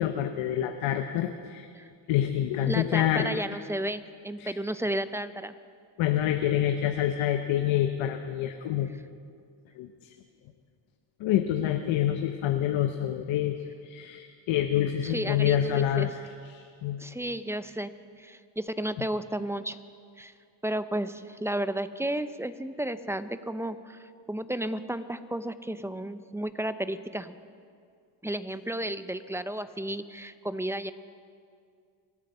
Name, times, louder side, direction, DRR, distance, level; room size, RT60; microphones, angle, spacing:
voice 1, 0.0-1.7 2.1-3.3 4.4-4.5 6.0-8.9 9.8-9.9 11.2-13.6 13.8-16.1 16.5-17.0, left 11 dB, 70° left, 6 dB, 1.0 m, -27 dB
voice 2, 2.7-5.5 8.9-9.0 15.0-16.1 17.0-17.9 18.2-19.8 20.2-20.3 20.6-27.4 28.2-30.9, right 1 dB, 5° right, 12 dB, 0.6 m, -33 dB
25.5 x 8.6 x 5.5 m, 2.3 s
cardioid pair, 85°, 48 cm